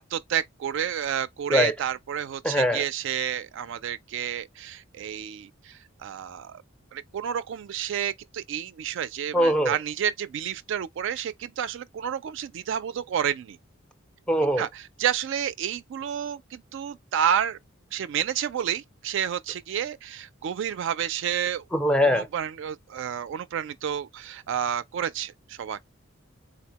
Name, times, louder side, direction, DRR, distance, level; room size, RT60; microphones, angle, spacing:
voice 1, 0.0-6.6 6.9-13.6 14.6-17.6 17.9-21.6 22.1-25.8, right 9 dB, 65° right, 0.3 m, -30 dB
voice 2, 2.4-2.8 9.3-9.8 14.3-14.7 21.7-22.3, equal, 5° left, 0.4 m, -22 dB
4.0 x 2.1 x 2.8 m
head